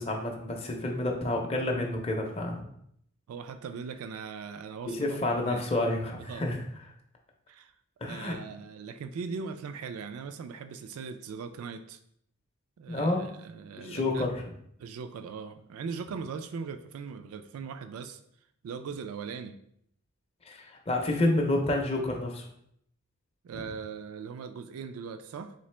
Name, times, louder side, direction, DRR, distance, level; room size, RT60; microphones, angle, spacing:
voice 1, 0.0-2.6 4.8-6.6 8.0-8.3 12.9-13.2 13.8-14.3 20.5-22.4, left 2 dB, 25° left, 1 dB, 0.5 m, -29 dB
voice 2, 3.3-5.6 6.3-6.5 7.5-7.7 8.0-12.0 12.8-14.3 14.8-18.2 18.6-19.6 23.4-25.5, right 5 dB, 80° right, 9 dB, 0.3 m, -40 dB
3.8 x 3.5 x 3.2 m, 0.71 s
head